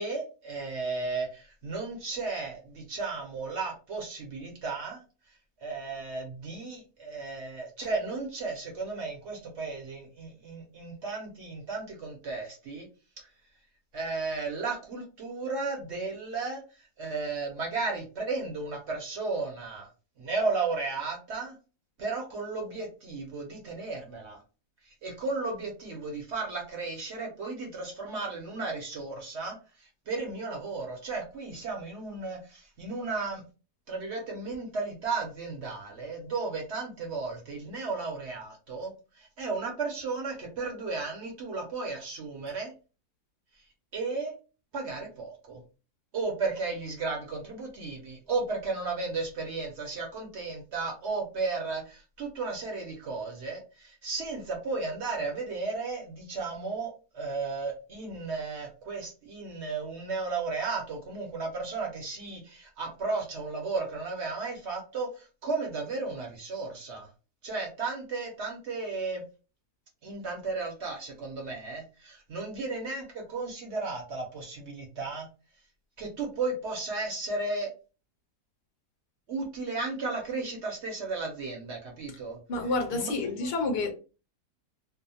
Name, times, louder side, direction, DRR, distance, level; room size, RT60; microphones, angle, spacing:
voice 1, 0.0-5.0 5.6-12.9 13.9-16.6 17.0-19.9 20.2-21.6 22.0-24.4 25.0-33.4 33.9-42.7 43.9-44.3 44.7-45.6 46.1-67.1 67.4-69.2 70.0-75.3 76.0-77.7 79.3-82.4 82.9-83.1 83.4-83.5, right 3 dB, 55° right, 0.8 m, -34 dB
voice 2, 82.5-83.9, left 3 dB, 55° left, 0.7 m, -29 dB
2.7 x 2.0 x 2.7 m
omnidirectional pair, 1.7 m